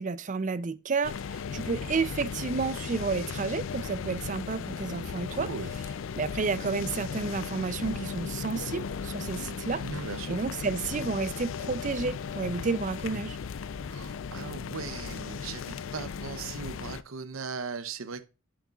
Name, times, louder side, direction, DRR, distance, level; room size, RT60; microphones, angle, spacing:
voice 1, 0.0-5.5 6.2-9.8 10.3-13.4, right 4 dB, 40° right, 0.4 m, -31 dB
sound 1, 1.0-17.0, left 6 dB, 75° left, 0.4 m, -36 dB
voice 2, 5.1-5.7 9.8-10.4 13.9-18.3, right 5 dB, 90° right, 0.7 m, -38 dB
11.0 x 7.7 x 2.3 m
head